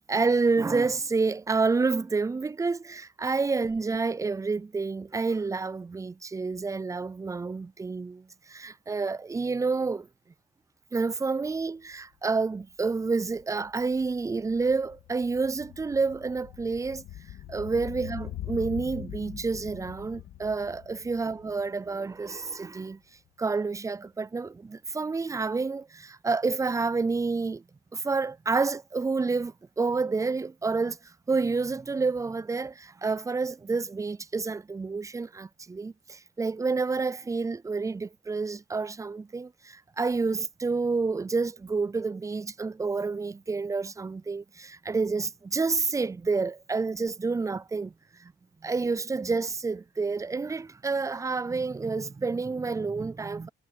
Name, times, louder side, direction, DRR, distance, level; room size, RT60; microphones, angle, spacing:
voice 1, 0.1-10.1 10.9-17.0 17.5-23.0 23.4-27.6 27.9-48.3 48.6-53.5, right 4 dB, 15° right, 0.4 m, -29 dB
sound 1, 11.9-12.0 12.3-22.6 22.9-23.0, left 13 dB, 80° left, 2.3 m, -43 dB
cardioid pair, 90°, 20 cm